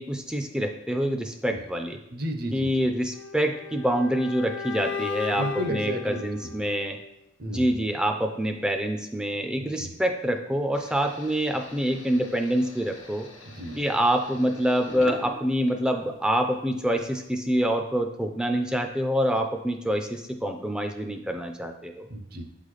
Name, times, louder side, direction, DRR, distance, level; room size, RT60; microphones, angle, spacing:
voice 1, 0.0-2.0 2.5-7.0 7.5-13.3 13.8-22.1, equal, 5° right, 5 dB, 0.3 m, -26 dB
voice 2, 2.1-2.7 5.3-6.2 7.4-7.8 9.6-9.9 13.4-13.8 22.1-22.4, right 1 dB, 50° right, 5 dB, 0.6 m, -33 dB
sound 1, 3.1-7.1, left 6 dB, 55° left, 0.4 m, -35 dB
sound 2, 10.7-16.2 16.7-17.4, left 1 dB, 80° left, 1.2 m, -44 dB
7.8 x 3.9 x 3.2 m, 0.84 s
head